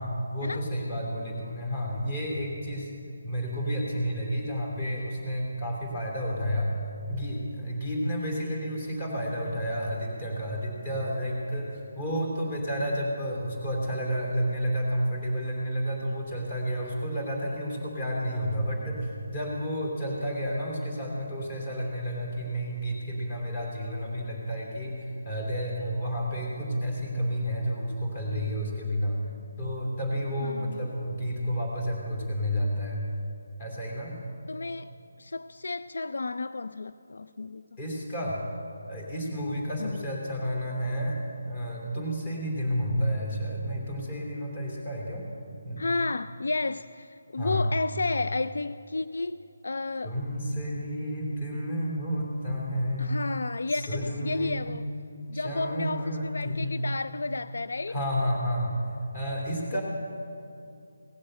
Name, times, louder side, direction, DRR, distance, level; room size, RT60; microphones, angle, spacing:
voice 1, 0.0-2.9 3.2-6.8 7.1-29.2 29.6-33.1 33.6-34.2 37.8-38.4 38.9-45.2 45.6-45.9 47.4-47.7 50.0-53.2 53.7-54.9 55.3-56.9 57.9-58.8 59.1-59.8, equal, 25° left, -1 dB, 3.0 m, -31 dB
voice 2, 30.4-30.9 34.5-37.6 39.8-40.0 45.8-49.4 49.6-50.2 53.0-54.9 55.3-58.0 59.7-59.8, left 3 dB, 75° left, 13 dB, 0.3 m, -32 dB
17.5 x 7.7 x 7.9 m, 2.6 s
hypercardioid pair, 170°, 0 cm